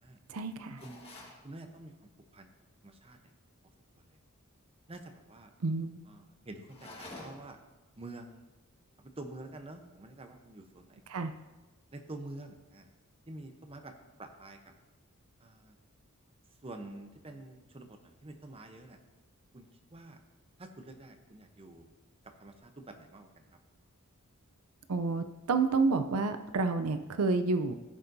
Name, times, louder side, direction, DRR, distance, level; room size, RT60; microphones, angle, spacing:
voice 1, 0.3-0.8 5.6-6.0 11.1-11.3 24.9-27.7, right 3 dB, 75° right, 9 dB, 0.5 m, -29 dB
sound 1, 0.8-1.4 6.7-7.6, left 2 dB, 25° left, 1.4 m, -48 dB
voice 2, 0.8-2.5 2.8-3.2 4.0-4.1 4.9-5.5 6.1-7.6 8.0-8.4 9.0-11.0 11.9-12.9 13.3-13.9 14.2-14.7 15.4-15.8 16.6-19.0 19.5-20.2 20.6-21.9 22.2-23.4, right 2 dB, 25° right, 6 dB, 0.8 m, -48 dB
14.5 x 6.7 x 2.7 m, 1.1 s
head